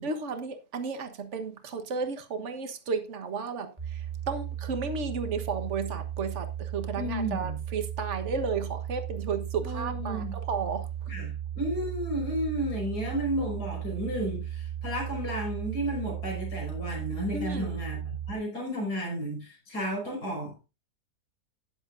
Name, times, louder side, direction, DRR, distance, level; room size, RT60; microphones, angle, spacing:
voice 1, 0.0-3.7 4.3-10.9 17.3-17.7, right 5 dB, 50° right, 1.5 m, -33 dB
sound 1, 3.8-18.3, right 10 dB, 20° right, 1.7 m, -36 dB
voice 2, 7.0-7.6 9.6-10.4 11.1-20.5, equal, 90° left, 5.7 m, -33 dB
13.0 x 10.5 x 2.6 m
omnidirectional pair, 1.7 m